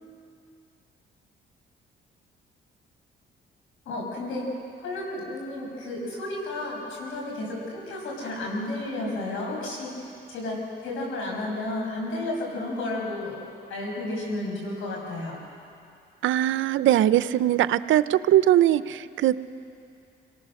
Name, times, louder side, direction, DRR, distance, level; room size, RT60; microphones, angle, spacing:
voice 1, 3.8-4.5 4.8-9.9 10.3-13.4 13.7-15.4, left 2 dB, 85° left, -1 dB, 6.5 m, -32 dB
voice 2, 16.2-19.4, right 12 dB, 80° right, 15 dB, 0.6 m, -21 dB
26.5 x 18.5 x 6.5 m, 2.5 s
cardioid pair, 90°, 20 cm